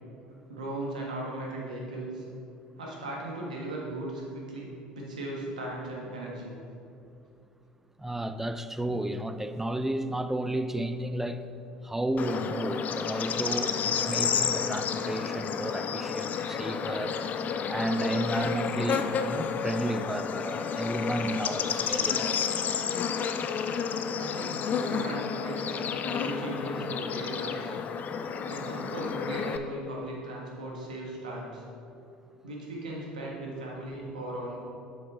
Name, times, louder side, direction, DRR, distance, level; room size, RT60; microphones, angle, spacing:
voice 1, 0.5-2.2 2.8-6.5 24.2-27.7 28.4-31.6 32.4-34.6, right 1 dB, 90° right, 1.4 m, -37 dB
voice 2, 8.0-11.4 11.8-17.2 17.7-22.4, right 1 dB, 10° right, 0.5 m, -32 dB
Bird / Insect, 12.2-29.6, left 6 dB, 45° left, 0.5 m, -31 dB
7.7 x 6.3 x 3.7 m
hypercardioid pair, 65°, 4 cm